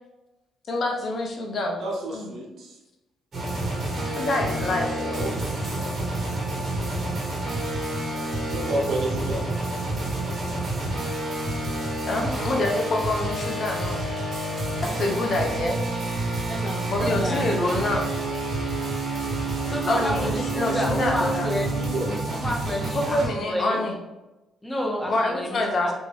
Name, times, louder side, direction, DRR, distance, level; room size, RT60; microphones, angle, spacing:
voice 1, 0.7-1.8 2.1-2.3 4.2-5.2 5.7-6.1 12.1-14.1 14.8-15.8 16.9-18.2 19.9-21.6 22.9-23.9 25.0-25.9, left 2 dB, 50° left, 1 dB, 0.7 m, -26 dB
voice 2, 1.8-2.8 3.7-3.8 4.7-5.4 8.5-9.4 21.7-22.1, right 1 dB, 70° right, -1 dB, 0.8 m, -30 dB
sound 1, 3.3-23.3, right 2 dB, 45° right, 1.1 m, -28 dB
voice 3, 16.5-17.5 19.7-22.0 22.3-23.8 24.6-25.9, equal, 10° left, -1 dB, 0.9 m, -30 dB
3.3 x 2.6 x 3.4 m, 1.0 s
cardioid pair, 90°, 0 cm